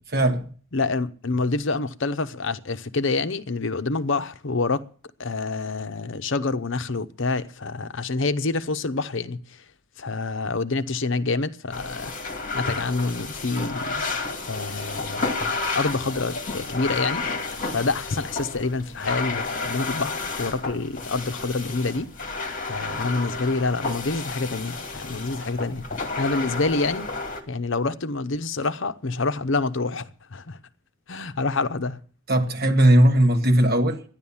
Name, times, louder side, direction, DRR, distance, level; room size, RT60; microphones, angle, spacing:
voice 1, 0.1-0.4 32.3-34.0, right 1 dB, 45° right, 1.7 m, -18 dB
voice 2, 0.7-4.8 5.2-9.4 10.0-12.1 12.5-13.9 14.5-17.2 17.7-22.1 22.7-27.1 27.5-30.6 31.1-32.0, left 3 dB, 60° left, 0.8 m, -27 dB
sound 1, 11.7-27.4, left 3 dB, 35° left, 2.2 m, -31 dB
12.5 x 10.5 x 7.1 m
head